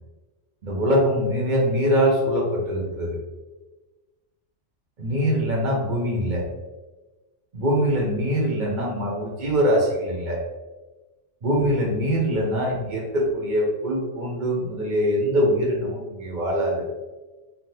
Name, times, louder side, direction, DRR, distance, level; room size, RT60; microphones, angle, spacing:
voice 1, 0.6-3.2 5.0-6.4 7.5-10.4 11.4-16.9, equal, 45° right, -2 dB, 0.9 m, -23 dB
3.4 x 2.5 x 2.7 m, 1.2 s
omnidirectional pair, 1.2 m